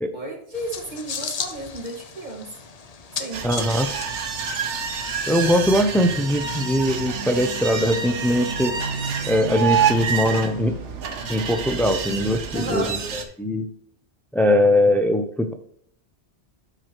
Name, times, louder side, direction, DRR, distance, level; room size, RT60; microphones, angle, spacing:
voice 1, 0.1-2.5 3.1-3.4 12.5-12.9, right 1 dB, 40° right, -1 dB, 2.1 m, -32 dB
sound 1, 0.5-6.3, left 5 dB, 40° left, 0.6 m, -36 dB
sound 2, 3.3-13.2, right 6 dB, 80° right, 1.3 m, -27 dB
voice 2, 3.4-3.9 5.3-8.7 9.3-10.7 11.3-13.0 13.4-13.6 14.3-15.5, left 1 dB, 5° left, 6 dB, 0.3 m, -21 dB
12.0 x 4.8 x 3.0 m, 0.65 s
omnidirectional pair, 1.2 m